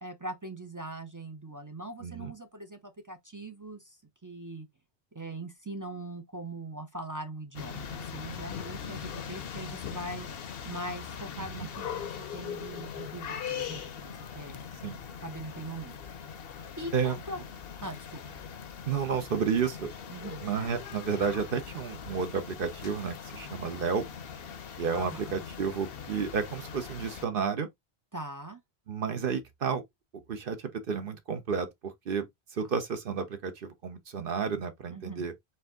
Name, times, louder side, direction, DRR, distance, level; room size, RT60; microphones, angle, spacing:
voice 1, 0.0-4.7 5.1-10.3 10.6-14.6 15.2-16.3 16.8-17.4 17.8-18.2 20.1-20.4 24.9-25.4 28.1-28.6 32.6-32.7 34.9-35.3, right 2 dB, 25° right, 0.4 m, -41 dB
voice 2, 2.0-2.3 11.5-11.7 14.8-15.0 16.9-17.2 18.9-19.9 20.4-24.0 24.8-27.7 28.9-29.8 30.3-35.3, right 6 dB, 60° right, 0.9 m, -31 dB
sound 1, 7.5-27.3, left 7 dB, 65° left, 0.9 m, -41 dB
4.4 x 2.6 x 3.5 m
omnidirectional pair, 1.1 m